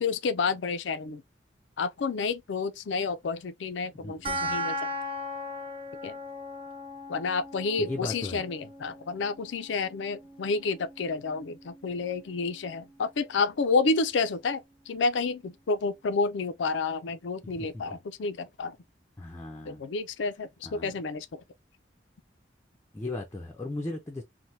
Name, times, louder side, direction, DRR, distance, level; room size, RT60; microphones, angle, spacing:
voice 1, 0.0-1.2 1.8-4.8 6.0-6.2 7.1-18.8 19.7-21.4, left 4 dB, 85° left, 0.4 m, -30 dB
voice 2, 4.0-4.6 7.8-8.5 17.6-18.0 19.2-19.8 20.6-20.9 22.9-24.2, left 2 dB, 15° left, 0.5 m, -37 dB
sound 1, 4.2-15.2, equal, 30° right, 0.9 m, -39 dB
3.2 x 2.2 x 2.7 m
head